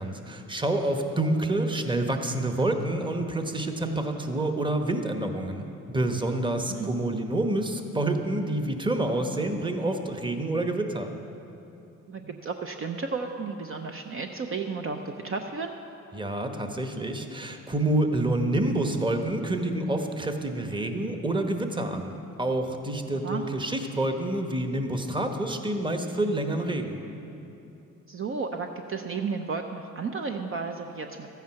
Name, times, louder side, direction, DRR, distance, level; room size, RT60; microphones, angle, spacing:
voice 1, 0.0-11.1 12.2-12.3 16.1-27.0, right 1 dB, 15° right, 5 dB, 1.1 m, -28 dB
voice 2, 12.1-15.7 23.1-23.5 28.1-31.3, right 4 dB, 45° right, 4 dB, 0.7 m, -33 dB
13.5 x 9.3 x 5.8 m, 2.8 s
cardioid pair, 90°, 30 cm